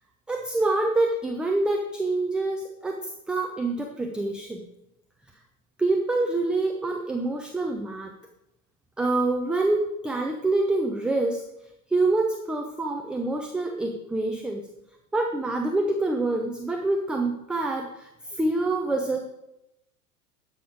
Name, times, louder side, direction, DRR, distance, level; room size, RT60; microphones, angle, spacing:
voice 1, 0.3-4.7 5.8-8.1 9.0-11.4 11.9-14.6 15.1-19.2, right 2 dB, ahead, 2 dB, 0.4 m, -26 dB
12.0 x 6.4 x 5.0 m, 0.85 s
figure-of-eight pair, 90°, 46 cm